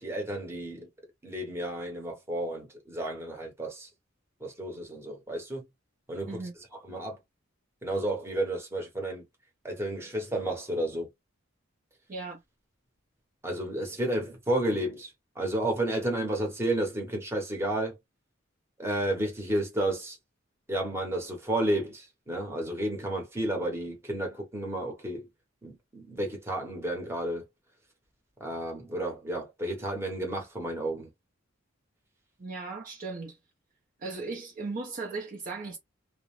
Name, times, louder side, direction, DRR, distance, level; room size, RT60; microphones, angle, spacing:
voice 1, 0.0-0.9 1.2-3.9 4.4-5.6 6.1-6.4 6.8-7.2 7.8-9.2 9.6-11.1 13.4-15.1 15.4-17.9 18.8-20.2 20.7-25.3 25.6-27.5 28.4-31.1, right 1 dB, 15° right, 0.9 m, -31 dB
voice 2, 12.1-12.4 32.4-33.4 34.0-35.8, right 3 dB, 45° right, 0.6 m, -37 dB
2.4 x 2.0 x 3.1 m
head